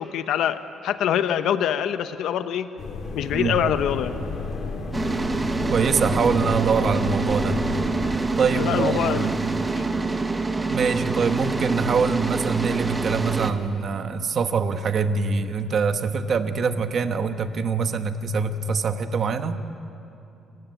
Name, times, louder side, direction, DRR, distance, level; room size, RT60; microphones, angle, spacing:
voice 1, 0.0-2.7 3.1-4.1 8.5-9.3 9.8-9.9, left 9 dB, 70° left, 10 dB, 0.9 m, -24 dB
sound 1, 2.8-8.1, left 4 dB, 45° left, 2.7 m, -32 dB
sound 2, 4.9-13.5, right 3 dB, 15° right, 1.1 m, -26 dB
voice 2, 5.7-7.6 8.4-9.3 10.7-19.6, right 5 dB, 40° right, 9 dB, 1.1 m, -24 dB
28.0 x 16.5 x 9.4 m, 2.7 s
cardioid pair, 155°, 0 cm